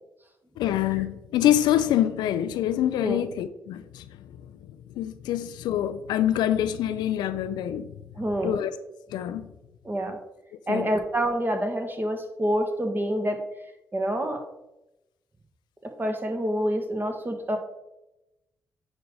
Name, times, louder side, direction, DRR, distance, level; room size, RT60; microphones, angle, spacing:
voice 1, 0.6-4.5 4.9-7.9 8.4-8.7 9.1-9.5 10.7-10.9, left 11 dB, 75° left, 0.4 m, -26 dB
voice 2, 8.2-8.6 9.8-10.2 10.7-13.4 13.9-14.4 15.8-17.6, equal, 25° right, 1.5 m, -27 dB
9.5 x 3.9 x 3.7 m
hypercardioid pair, 40°, 8 cm